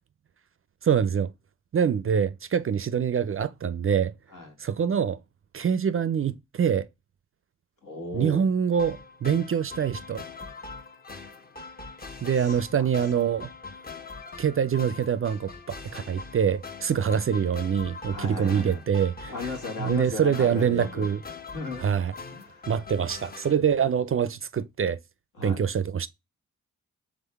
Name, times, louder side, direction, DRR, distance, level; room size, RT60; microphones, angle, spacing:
voice 1, 0.8-1.3 1.7-4.1 4.6-5.2 5.5-6.9 8.1-10.2 12.2-13.5 14.4-19.3 19.8-21.2 21.8-22.1 22.7-25.0 25.4-26.1, right 7 dB, 40° right, 0.5 m, -25 dB
voice 2, 7.8-8.5 12.4-12.9 17.0-17.2 18.1-18.8 19.3-21.1 21.5-21.9 22.3-22.7 25.3-25.6, left 2 dB, 65° left, 1.8 m, -36 dB
sound 1, 8.8-23.5, left 4 dB, 25° left, 0.9 m, -42 dB
3.6 x 3.6 x 3.4 m
supercardioid pair, 40°, 35 cm